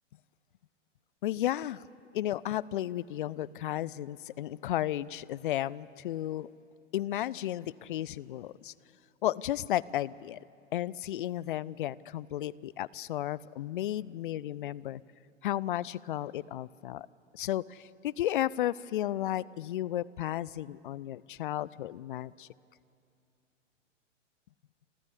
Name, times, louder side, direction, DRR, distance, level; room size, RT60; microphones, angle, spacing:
voice 1, 1.2-1.8 2.1-6.5 6.9-8.7 9.2-10.4 10.7-15.0 15.4-17.1 17.3-22.5, left 13 dB, 45° left, 22 dB, 0.5 m, -33 dB
27.5 x 13.5 x 8.3 m, 2.5 s
figure-of-eight pair, 110°, 37 cm